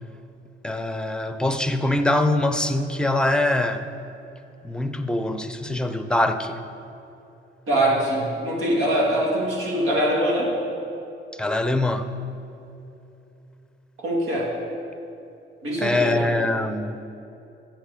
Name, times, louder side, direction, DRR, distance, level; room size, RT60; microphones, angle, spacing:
voice 1, 0.6-3.8 4.6-6.6 11.4-12.1 15.8-17.0, left 1 dB, 5° left, 8 dB, 0.6 m, -23 dB
voice 2, 7.7-10.5 14.0-14.5 15.6-16.3, right 1 dB, 90° right, -3 dB, 2.2 m, -23 dB
9.1 x 7.3 x 5.0 m, 2.8 s
cardioid pair, 90°, 20 cm